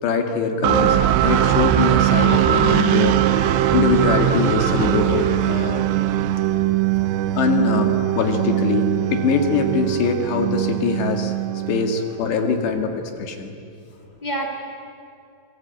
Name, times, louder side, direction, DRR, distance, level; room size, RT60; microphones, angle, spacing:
voice 1, 0.0-3.2 3.7-5.8 7.4-7.9 8.2-11.3 11.7-13.5, left 5 dB, 65° left, 5 dB, 4.1 m, -22 dB
sound 1, 0.6-12.4, right 12 dB, 75° right, 2.9 m, -20 dB
voice 2, 7.7-8.2 8.5-8.6 13.9-14.5, right 1 dB, 85° left, 1 dB, 0.4 m, -31 dB
26.0 x 23.5 x 9.2 m, 2.5 s
omnidirectional pair, 5.4 m